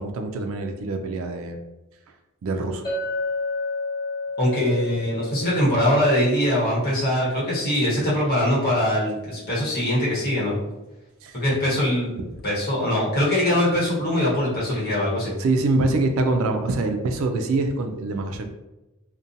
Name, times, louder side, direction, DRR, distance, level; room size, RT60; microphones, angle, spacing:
voice 1, 0.0-1.6 2.4-2.8 11.2-11.4 15.4-18.5, right 2 dB, 65° right, 5 dB, 0.3 m, -24 dB
Chink clink, 2.8-7.3, left 3 dB, 20° left, 0.7 m, -31 dB
voice 2, 4.4-10.6 11.3-12.1 12.4-15.3, left 1 dB, 45° left, -7 dB, 1.1 m, -22 dB
2.6 x 2.1 x 2.6 m, 1.0 s
head